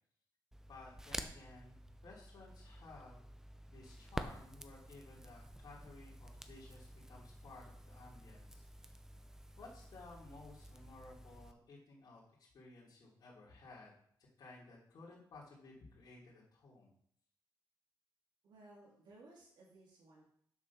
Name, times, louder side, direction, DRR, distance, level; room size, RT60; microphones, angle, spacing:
Crackle, 0.5-11.5, right 1 dB, 5° right, 0.6 m, -50 dB
voice 1, 0.7-1.8 2.0-3.2 3.7-9.0 9.6-12.2 12.5-13.9 14.4-16.9, left 3 dB, 60° left, -7 dB, 3.0 m, -56 dB
voice 2, 18.4-20.3, right 2 dB, 90° right, -4 dB, 3.2 m, -60 dB
7.3 x 6.3 x 5.9 m, 0.65 s
wide cardioid pair, 140°, 8 cm